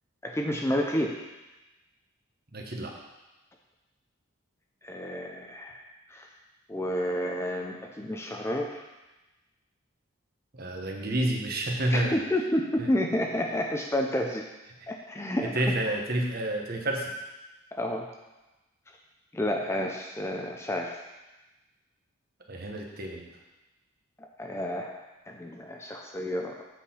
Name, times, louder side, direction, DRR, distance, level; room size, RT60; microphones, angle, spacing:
voice 1, 0.2-1.2 4.8-5.8 6.1-6.3 6.7-8.9 11.9-14.5 14.9-15.5 17.7-18.1 19.3-21.0 24.4-25.0 25.3-26.6, left 1 dB, 15° left, 1 dB, 0.5 m, -30 dB
voice 2, 2.5-2.9 10.5-12.2 12.8-12.9 15.5-17.1 22.5-23.3, right 1 dB, 45° right, 1 dB, 1.1 m, -29 dB
8.3 x 4.3 x 5.6 m, 1.1 s
head